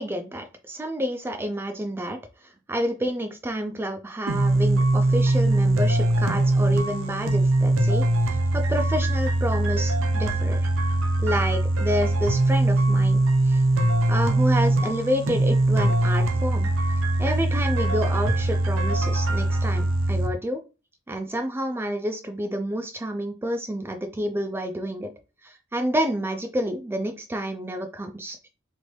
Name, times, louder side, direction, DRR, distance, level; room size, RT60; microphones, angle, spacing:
voice 1, 0.0-2.2 2.7-10.6 11.2-16.7 17.2-20.6 21.1-25.1 25.4-28.4, equal, 10° right, 6 dB, 0.3 m, -29 dB
sound 1, 4.3-20.3, right 2 dB, 70° right, 0.5 m, -22 dB
3.0 x 2.5 x 3.1 m, 0.31 s
head